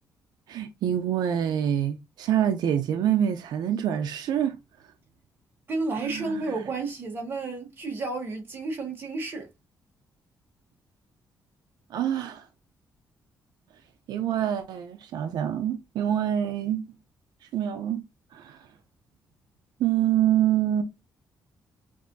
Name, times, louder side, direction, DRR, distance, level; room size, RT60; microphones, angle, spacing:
voice 1, 0.5-4.5 6.0-6.5 11.9-12.4 14.1-16.8 17.5-18.0 18.3-18.6 19.8-20.8, right 10 dB, 85° right, 0.6 m, -26 dB
voice 2, 5.7-9.5, right 3 dB, 30° right, 1.4 m, -31 dB
7.2 x 2.7 x 2.7 m
cardioid pair, 180°, 7 cm